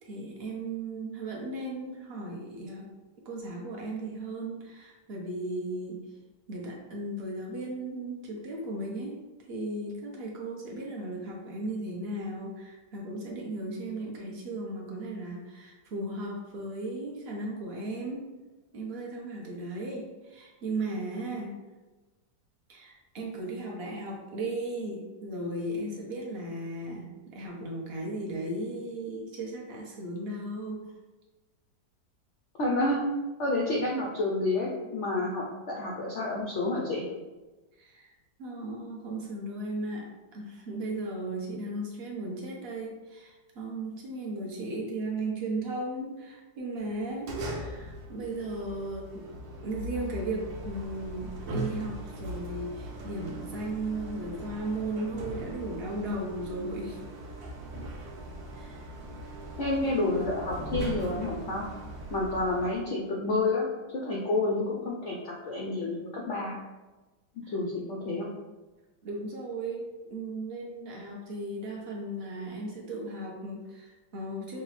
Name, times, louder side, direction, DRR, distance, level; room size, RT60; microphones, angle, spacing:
voice 1, 0.0-2.9 3.2-6.1 6.5-9.2 9.5-18.2 18.7-21.5 22.7-30.9 37.7-57.0 58.5-58.9 59.8-59.9 67.4-67.5 69.0-74.6, right 2 dB, 45° right, -2 dB, 0.8 m, -36 dB
voice 2, 32.6-33.0 33.4-37.0 59.6-61.7 62.1-63.7 63.9-66.6 67.4-68.3, left 2 dB, 80° left, -2 dB, 0.6 m, -29 dB
sound 1, 46.8-62.8, right 1 dB, 85° right, 1.4 m, -40 dB
5.8 x 2.2 x 3.2 m, 1.2 s
omnidirectional pair, 2.0 m